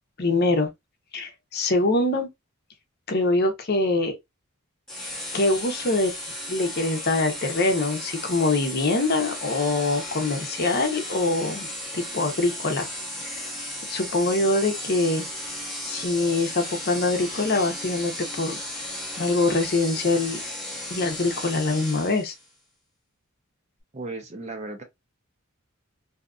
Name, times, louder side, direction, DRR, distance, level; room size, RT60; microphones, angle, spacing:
voice 1, 0.2-0.7 1.1-2.3 3.1-4.1 5.3-6.1 6.5-11.7 11.9-12.9 13.2-13.4 13.9-15.2 15.8-18.6 19.2-20.4 20.9-22.3, left 2 dB, 50° left, 0.7 m, -24 dB
sound 1, 4.9-22.5, left 1 dB, 5° left, 0.8 m, -35 dB
voice 2, 23.9-24.8, right 2 dB, 30° right, 0.6 m, -35 dB
2.7 x 2.4 x 2.3 m
head